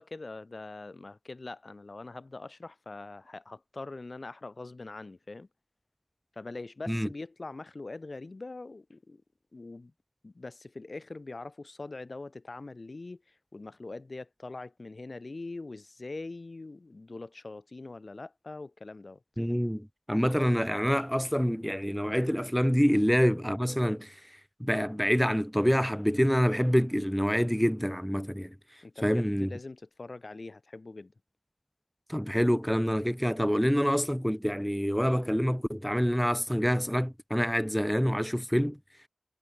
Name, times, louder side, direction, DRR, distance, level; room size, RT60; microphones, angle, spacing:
voice 1, 0.0-5.5 6.4-9.2 9.5-9.9 10.2-19.2 22.8-23.0 28.8-31.1 37.7-37.8, left 3 dB, 75° left, 2.7 m, -43 dB
voice 2, 19.4-24.2 24.6-28.5 29.0-29.5 32.1-38.8, equal, 5° left, 0.6 m, -26 dB
wide cardioid pair, 50°, 0 cm